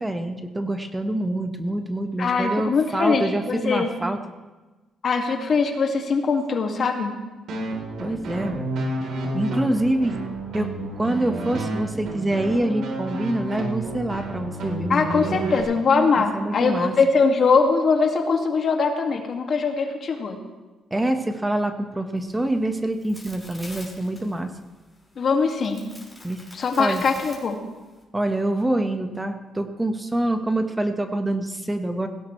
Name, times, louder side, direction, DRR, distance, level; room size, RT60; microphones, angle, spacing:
voice 1, 0.0-4.2 8.0-8.7 9.3-10.2 10.5-10.7 11.0-15.5 16.3-16.9 20.9-24.5 26.2-26.4 26.8-27.0 28.1-32.1, right 1 dB, 15° right, 6 dB, 1.4 m, -26 dB
voice 2, 2.2-3.9 5.0-7.1 14.9-20.4 25.2-25.8 26.5-27.6, left 4 dB, 55° left, 3 dB, 2.2 m, -22 dB
sound 1, 7.5-15.6, right 2 dB, 75° right, 3.9 m, -30 dB
sound 2, 22.2-28.0, left 1 dB, 5° left, 5.3 m, -46 dB
19.5 x 17.0 x 3.3 m, 1.2 s
cardioid pair, 90°, 0 cm